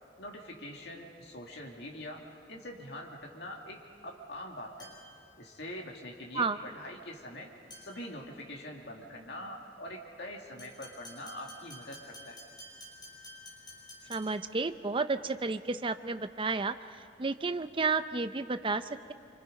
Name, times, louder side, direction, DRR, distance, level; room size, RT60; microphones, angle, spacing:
voice 1, 0.2-2.2 2.5-4.9 5.4-7.5 7.8-12.4, left 1 dB, 65° left, 0 dB, 2.5 m, -44 dB
sound 1, 4.8-5.2 7.7-8.1 10.6-14.5, left 1 dB, 25° left, 5.2 m, -50 dB
voice 2, 14.1-16.7 17.2-19.1, right 4 dB, 30° right, 11 dB, 0.6 m, -31 dB
26.5 x 26.0 x 5.3 m, 2.5 s
head